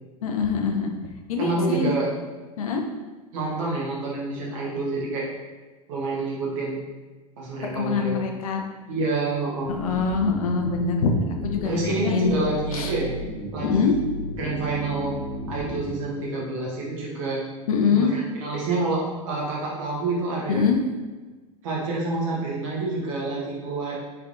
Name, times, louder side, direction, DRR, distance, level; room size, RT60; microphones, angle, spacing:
voice 1, 0.2-0.9 1.3-1.9 2.6-2.9 7.7-8.6 9.7-12.3 12.7-12.9 13.6-13.9 17.7-18.1 20.5-20.8, left 5 dB, 70° left, 3 dB, 0.5 m, -24 dB
voice 2, 1.4-2.1 3.3-5.3 5.9-6.8 7.4-8.2 8.9-9.8 11.6-13.1 13.5-13.9 14.4-15.1 15.5-17.4 17.9-20.6 21.6-24.0, right 2 dB, 60° right, -4 dB, 1.2 m, -27 dB
sound 1, 9.6-16.0, equal, 55° left, 0.9 m, -34 dB
3.4 x 3.4 x 2.5 m, 1.3 s
hypercardioid pair, 85°, 19 cm